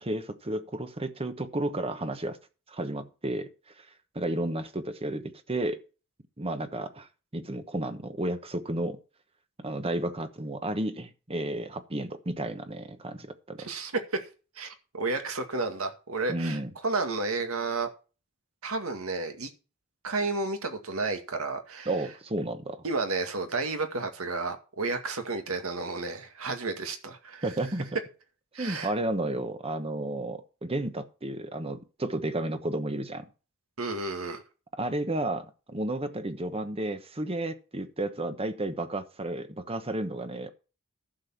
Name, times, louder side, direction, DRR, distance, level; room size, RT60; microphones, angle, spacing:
voice 1, 0.0-2.4 2.7-3.5 3.8-3.9 4.1-5.8 6.4-7.1 7.3-9.0 9.6-13.7 16.3-16.7 21.9-22.8 27.4-28.0 28.6-33.2 34.8-40.5, right 1 dB, 25° right, 1.1 m, -32 dB
voice 2, 13.6-13.9 14.6-17.9 18.6-19.5 20.0-21.9 22.8-27.5 28.5-28.9 33.8-34.4, right 3 dB, 75° right, 2.0 m, -32 dB
11.5 x 7.0 x 5.8 m
head